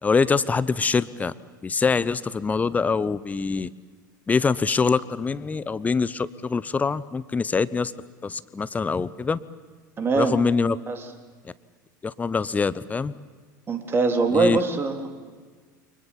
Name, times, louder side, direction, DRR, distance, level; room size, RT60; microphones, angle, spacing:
voice 1, 0.0-1.3 1.6-3.7 4.3-7.9 8.2-9.4 10.1-10.8 12.0-13.1 14.3-14.6, left 5 dB, 15° left, 18 dB, 0.9 m, -24 dB
voice 2, 10.0-10.4 10.9-11.0 13.7-15.1, right 4 dB, 20° right, 4 dB, 3.4 m, -23 dB
29.5 x 25.0 x 7.3 m, 1.5 s
figure-of-eight pair, 80°, 10 cm